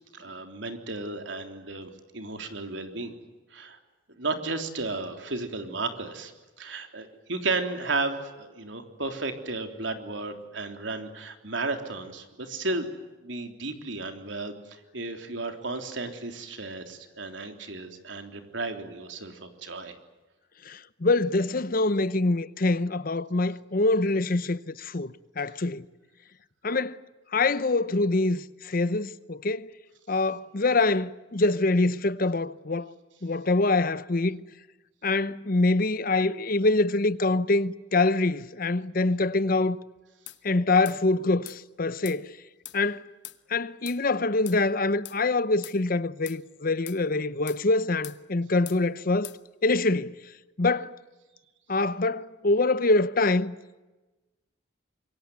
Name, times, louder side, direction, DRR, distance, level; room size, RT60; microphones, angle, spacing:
voice 1, 0.1-3.1 3.5-3.8 4.2-6.3 6.6-12.9 13.2-20.0, right 3 dB, 75° right, 3.6 m, -33 dB
voice 2, 20.6-25.8 26.6-27.0 27.3-29.7 30.1-32.9 33.2-34.4 35.0-39.8 40.4-42.3 42.7-43.0 43.5-49.3 49.6-50.1 50.6-51.0 51.7-53.5, left 2 dB, 45° left, 0.8 m, -25 dB
sound 1, 40.3-40.4 40.9-41.0 41.5-41.6 42.0-42.2 42.6-42.8 43.2-43.4 43.9-44.0 44.5-44.6 45.0-45.2 45.6-45.8 46.3-46.4 46.9-47.0 47.5-47.6 48.0-48.2 48.7-48.8 49.2-49.4, left 15 dB, 65° left, 1.1 m, -42 dB
26.5 x 23.0 x 9.5 m
head